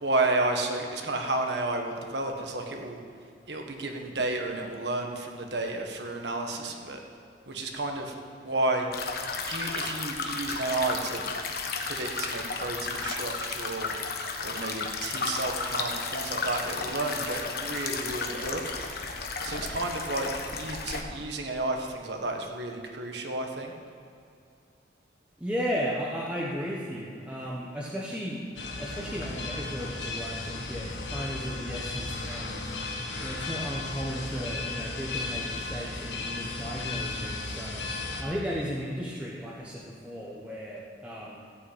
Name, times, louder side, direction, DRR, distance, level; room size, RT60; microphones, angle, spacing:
voice 1, 0.0-3.0 3.5-7.0 7.5-8.1 8.4-8.9 9.5-11.2 11.8-13.9 14.4-18.6 19.4-23.7, right 2 dB, 70° right, 3 dB, 1.5 m, -31 dB
sound 1, 8.9-21.0, left 4 dB, 55° left, 1.2 m, -33 dB
voice 2, 25.4-32.7 33.2-37.8 38.2-41.4, equal, 5° right, -5 dB, 1.1 m, -35 dB
sound 2, 28.6-38.2, left 3 dB, 80° left, 1.6 m, -35 dB
15.5 x 5.8 x 8.7 m, 2.4 s
head